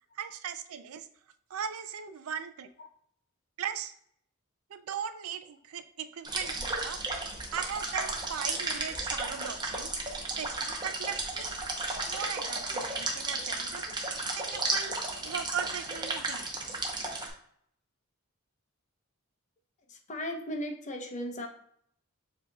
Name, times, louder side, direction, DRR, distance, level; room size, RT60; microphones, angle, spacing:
voice 1, 0.2-1.1 1.5-2.7 3.6-3.9 4.7-7.0 7.5-9.9 10.3-11.6 12.1-13.9 14.3-14.9 15.2-16.5, right 7 dB, 80° right, 10 dB, 0.4 m, -38 dB
sound 1, 6.2-17.3, right 2 dB, 20° right, 0.7 m, -34 dB
voice 2, 19.9-21.5, equal, 35° left, 4 dB, 0.6 m, -36 dB
7.3 x 2.8 x 2.3 m, 0.67 s
head